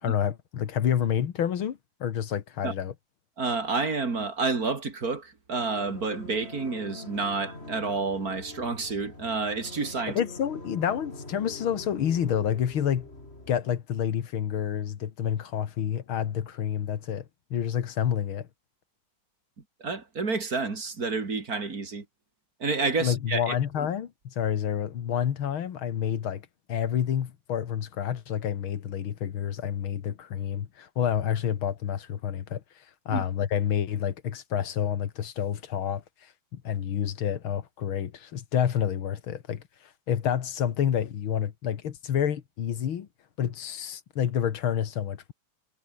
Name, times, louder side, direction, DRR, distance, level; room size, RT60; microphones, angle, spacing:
voice 1, 0.0-2.9 10.1-13.1 13.5-17.3 17.5-18.5 23.0-26.4 26.7-32.6 33.1-36.0 36.5-39.6 40.1-43.1 43.4-45.3, left 9 dB, 75° left, 2.3 m, -28 dB
voice 2, 3.4-10.2 19.8-22.0 22.6-23.9 33.1-33.2, right 4 dB, 45° right, 3.1 m, -29 dB
sound 1, 5.6-13.6, left 2 dB, 30° left, 5.8 m, -44 dB
omnidirectional pair, 2.3 m